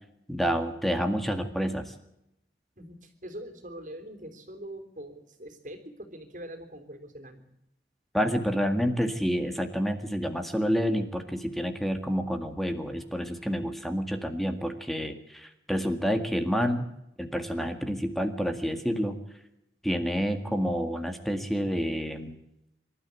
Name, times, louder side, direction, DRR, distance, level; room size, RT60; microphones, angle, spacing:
voice 1, 0.3-1.9 8.1-16.9 17.2-19.2 19.8-22.4, equal, ahead, 6 dB, 1.9 m, -29 dB
voice 2, 2.8-7.5, right 1 dB, 45° right, 6 dB, 3.5 m, -43 dB
26.0 x 13.0 x 8.3 m, 0.84 s
head